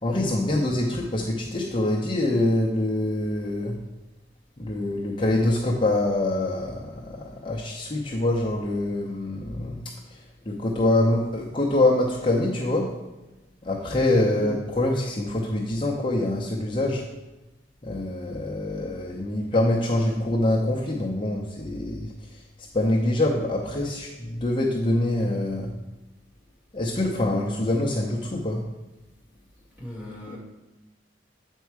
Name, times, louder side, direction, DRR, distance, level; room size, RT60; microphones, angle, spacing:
voice 1, 0.0-3.8 4.6-9.8 10.1-12.9 13.6-17.0 17.8-22.4 22.7-25.7 26.7-28.6 30.3-30.4, left 1 dB, 30° left, -3 dB, 0.7 m, -25 dB
voice 2, 13.9-14.2 29.8-30.4, left 1 dB, 10° right, -4 dB, 2.0 m, -37 dB
8.4 x 4.5 x 4.6 m, 1.0 s
head